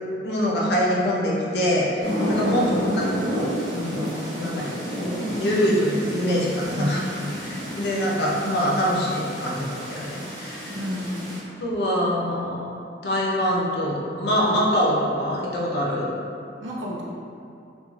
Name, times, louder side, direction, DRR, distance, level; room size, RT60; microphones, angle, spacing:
voice 1, 0.2-2.6 3.0-3.1 3.3-4.1 4.4-7.0 7.4-10.8 11.6-12.6 13.0-16.1, equal, 60° left, -5 dB, 0.5 m, -24 dB
sound 1, 2.0-11.4, equal, 60° right, 0.9 m, -30 dB
voice 2, 2.4-2.8 6.7-7.3 10.7-11.4 16.6-17.0, left 1 dB, 90° right, -4 dB, 0.5 m, -30 dB
2.3 x 2.2 x 3.1 m, 2.6 s
head